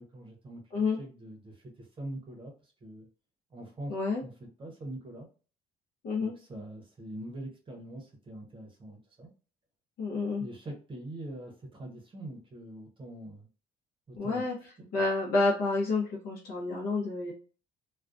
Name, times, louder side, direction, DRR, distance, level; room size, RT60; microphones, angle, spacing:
voice 1, 0.0-3.1 3.5-3.9 4.2-5.3 6.2-9.3 10.4-13.5 14.1-14.4 14.8-14.9, right 1 dB, 30° right, 1 dB, 0.7 m, -43 dB
voice 2, 3.9-4.2 6.0-6.3 10.0-10.5 14.2-14.5 14.9-17.3, left 3 dB, 65° left, -2 dB, 0.7 m, -29 dB
2.3 x 2.2 x 2.4 m, 0.38 s
cardioid pair, 110°, 17 cm